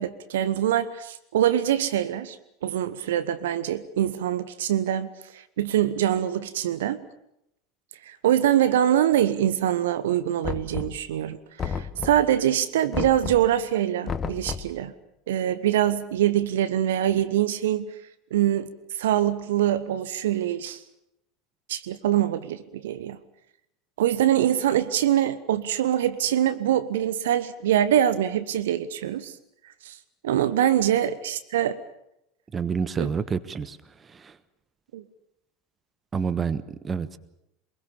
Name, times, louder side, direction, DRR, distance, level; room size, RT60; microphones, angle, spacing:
voice 1, 0.0-2.4 2.6-5.1 5.3-7.0 8.1-14.9 15.3-17.9 18.3-18.7 19.0-20.8 21.7-23.2 24.0-29.3 29.8-30.0 30.2-31.8 33.0-33.1 34.9-35.0, right 11 dB, 65° right, 14 dB, 1.1 m, -24 dB
Knock, 10.4-11.2 11.6-12.4 12.9-13.6 14.1-14.8, left 6 dB, 25° left, 1.3 m, -32 dB
voice 2, 32.5-34.4 36.1-37.2, right 6 dB, 25° right, 14 dB, 1.3 m, -29 dB
24.0 x 22.5 x 7.1 m, 0.82 s
figure-of-eight pair, 80°, 0 cm